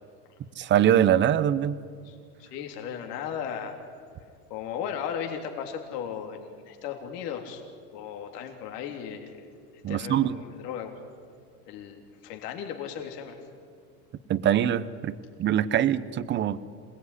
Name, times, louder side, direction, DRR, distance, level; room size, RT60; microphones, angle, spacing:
voice 1, 0.6-1.8 9.8-10.4 14.3-16.6, right 10 dB, 25° right, 16 dB, 0.8 m, -23 dB
voice 2, 2.0-3.8 4.5-7.6 7.9-11.0 11.7-13.4, left 8 dB, 70° left, 3 dB, 3.6 m, -36 dB
26.0 x 19.0 x 9.9 m, 2.2 s
supercardioid pair, 145°, 49 cm